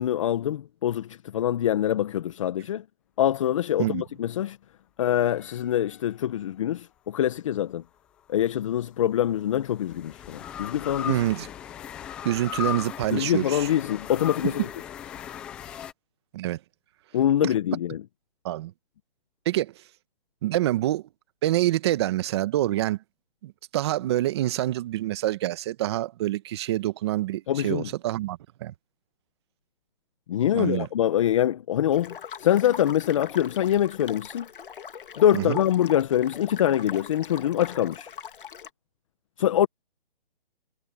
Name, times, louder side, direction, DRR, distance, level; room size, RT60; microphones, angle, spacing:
voice 1, 0.0-2.8 3.2-4.6 5.0-7.8 8.3-11.2 13.1-14.7 17.1-18.0 27.5-27.9 30.3-34.5 35.2-38.1 39.4-39.7, left 11 dB, 35° left, 1.0 m, -24 dB
sound 1, 5.0-6.5 8.4-15.9, left 9 dB, 5° left, 0.5 m, -38 dB
voice 2, 11.1-11.5 12.2-13.7 14.4-14.5 16.3-16.6 17.4-17.5 18.4-18.7 19.4-19.7 20.4-21.0 21.4-23.0 23.4-28.7 30.5-30.9 35.3-35.6, right 14 dB, 25° right, 1.4 m, -26 dB
sound 2, 31.9-38.7, left 8 dB, 60° left, 2.1 m, -41 dB
hypercardioid pair, 160°, 29 cm